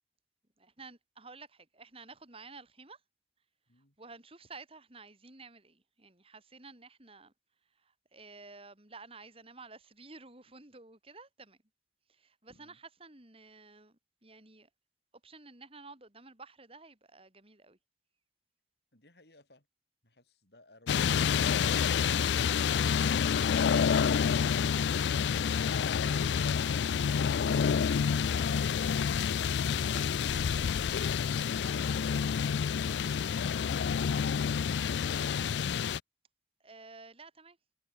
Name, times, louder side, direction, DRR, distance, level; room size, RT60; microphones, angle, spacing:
voice 1, 0.6-3.0 3.8-7.3 7.6-11.6 12.1-14.7 15.2-17.8 25.2-26.9 29.8-30.7 36.6-37.6, right 3 dB, 35° right, 3.5 m, -53 dB
voice 2, 18.9-19.7, left 2 dB, 65° left, 7.8 m, -63 dB
sound 1, 20.9-36.0, left 7 dB, 80° left, 0.4 m, -28 dB
head